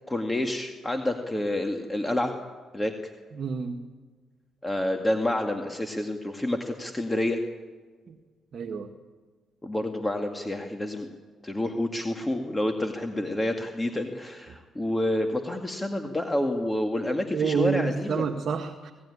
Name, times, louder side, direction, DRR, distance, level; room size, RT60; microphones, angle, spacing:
voice 1, 0.1-2.4 2.7-2.9 4.6-7.4 9.6-11.1 11.4-18.3, left 1 dB, 15° left, 4 dB, 2.1 m, -28 dB
voice 2, 3.3-3.8 8.1-8.2 8.5-8.9 17.3-18.9, right 6 dB, 55° right, 4 dB, 1.7 m, -28 dB
26.0 x 17.5 x 10.0 m, 1.5 s
cardioid pair, 90°, 0 cm